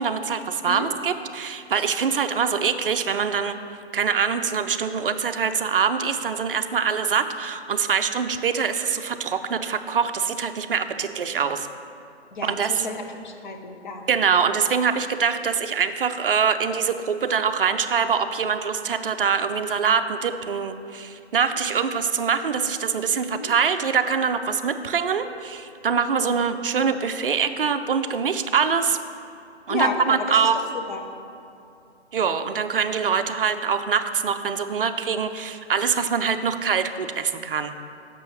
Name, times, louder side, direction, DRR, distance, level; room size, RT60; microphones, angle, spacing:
voice 1, 0.0-3.6 3.9-11.7 12.4-12.9 14.1-29.0 29.7-30.6 32.1-37.7, right 6 dB, 55° right, 9 dB, 0.5 m, -24 dB
voice 2, 12.3-14.0 23.3-23.5 29.7-30.5 30.9-31.0, left 3 dB, 45° left, 4 dB, 0.8 m, -31 dB
6.2 x 5.3 x 6.4 m, 2.7 s
figure-of-eight pair, 150°, 34 cm